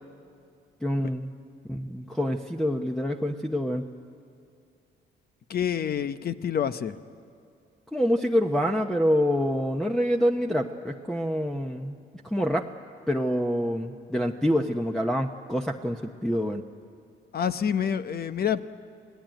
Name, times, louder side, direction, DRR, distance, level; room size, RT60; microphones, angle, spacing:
voice 1, 0.8-1.3 1.7-3.9 7.9-12.0 12.2-12.7 13.1-16.6, equal, 5° left, -1 dB, 1.0 m, -26 dB
voice 2, 5.5-6.9 17.3-18.6, left 8 dB, 50° left, 11 dB, 0.9 m, -27 dB
27.0 x 18.0 x 9.2 m, 2.5 s
cardioid pair, 90°, 20 cm